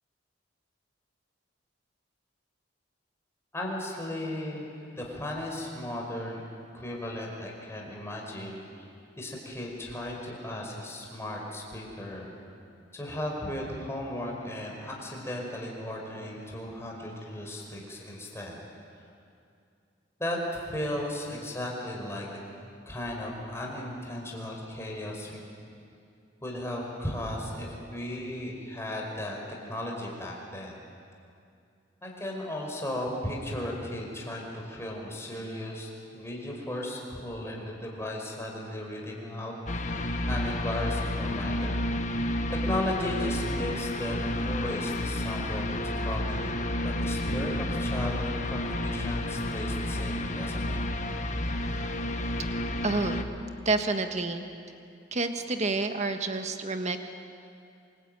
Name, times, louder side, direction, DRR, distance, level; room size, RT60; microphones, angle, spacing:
voice 1, 3.5-6.4 6.7-8.9 9.2-12.3 12.9-18.6 20.2-22.4 22.8-25.4 26.4-29.4 29.6-30.7 32.0-39.5 39.8-42.2 42.5-50.8, left 1 dB, 15° left, -1 dB, 5.1 m, -36 dB
sound 1, 39.7-53.2, left 1 dB, 40° left, 1.4 m, -31 dB
voice 2, 52.8-53.3 53.6-54.4 55.1-57.0, right 3 dB, 40° right, 7 dB, 1.5 m, -29 dB
27.5 x 21.5 x 9.1 m, 2.5 s
head